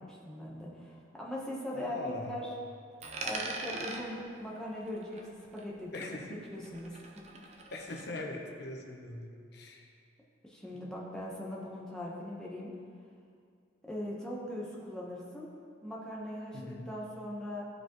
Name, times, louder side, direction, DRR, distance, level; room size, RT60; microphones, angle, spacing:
voice 1, 0.0-2.5 3.2-6.1 6.5-7.2 10.4-12.7 13.9-15.5 15.8-17.6, left 1 dB, 5° left, -5 dB, 1.1 m, -40 dB
voice 2, 1.7-2.4 5.9-6.4 7.7-9.9 10.7-10.9 16.5-16.9, left 2 dB, 50° left, 1 dB, 0.8 m, -41 dB
Coin (dropping), 3.0-5.8 6.0-8.0, right 3 dB, 35° right, 0.6 m, -42 dB
13.5 x 4.8 x 3.1 m, 2.2 s
head